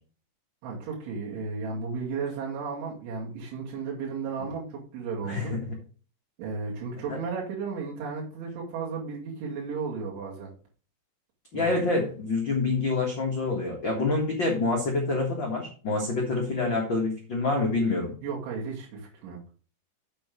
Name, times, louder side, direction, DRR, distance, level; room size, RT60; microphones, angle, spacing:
voice 1, 0.6-5.5 6.4-10.5 11.5-11.8 18.2-19.4, right 5 dB, 75° right, -4 dB, 4.8 m, -34 dB
voice 2, 5.3-5.7 7.1-7.2 11.5-18.1, left 3 dB, 75° left, -1 dB, 1.1 m, -27 dB
8.3 x 6.3 x 5.2 m, 0.39 s
omnidirectional pair, 5.4 m